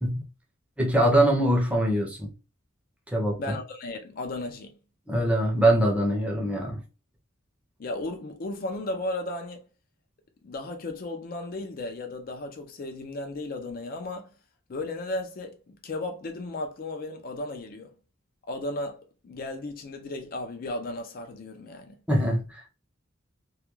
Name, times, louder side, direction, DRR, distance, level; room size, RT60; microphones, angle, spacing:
voice 1, 0.8-2.3 3.1-3.6 5.1-6.8 22.1-22.7, right 1 dB, 5° right, 0.6 m, -23 dB
voice 2, 3.4-4.8 7.8-9.6 10.4-14.3 14.7-17.9 18.5-22.0, left 2 dB, 45° left, 0.4 m, -35 dB
2.3 x 2.1 x 3.0 m
head